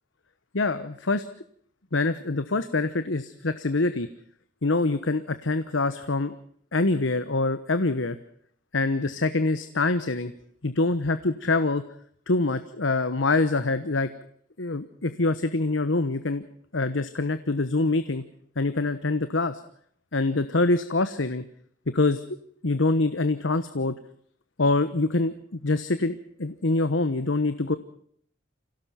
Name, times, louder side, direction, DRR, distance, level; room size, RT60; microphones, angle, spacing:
voice 1, 0.5-1.2 1.9-4.1 4.6-6.3 6.7-8.2 8.7-10.3 10.6-11.8 12.3-14.1 14.6-16.4 16.7-18.2 18.6-19.6 20.1-21.4 21.9-22.2 22.6-23.9 24.6-27.8, left 3 dB, 80° left, 11 dB, 1.1 m, -25 dB
27.0 x 17.5 x 5.9 m, 0.62 s
head